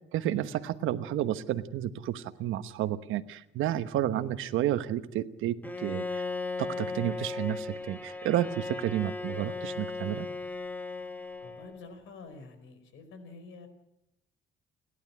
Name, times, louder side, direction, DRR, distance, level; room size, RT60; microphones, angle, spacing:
voice 1, 0.1-6.2 6.6-10.3, right 12 dB, 90° right, 11 dB, 1.1 m, -31 dB
Bowed string instrument, 5.6-11.9, left 3 dB, 10° left, 1.4 m, -37 dB
voice 2, 11.4-13.7, left 3 dB, 85° left, 9 dB, 5.0 m, -48 dB
30.0 x 11.5 x 9.8 m, 0.89 s
cardioid pair, 90°, 20 cm